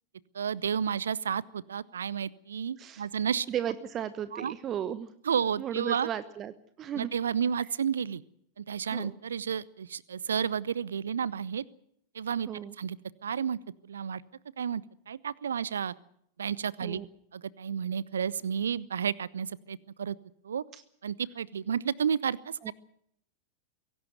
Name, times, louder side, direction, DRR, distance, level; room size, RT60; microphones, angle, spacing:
voice 1, 0.3-3.5 4.3-4.5 5.3-6.1 6.9-8.2 8.6-11.6 12.1-12.5 12.8-13.0 13.2-14.2 14.6-15.9 16.4-17.0 17.3-20.2 20.4-20.6 21.0-22.7, right 7 dB, 70° right, 22 dB, 0.8 m, -31 dB
voice 2, 2.8-3.1 3.5-5.1 5.6-6.5 6.8-7.1 8.9-9.2 12.5-12.7 16.8-17.1 20.7-20.8 22.6-22.7, right 10 dB, 30° right, 14 dB, 1.1 m, -35 dB
23.5 x 17.5 x 7.8 m, 0.70 s
figure-of-eight pair, 90°, 0 cm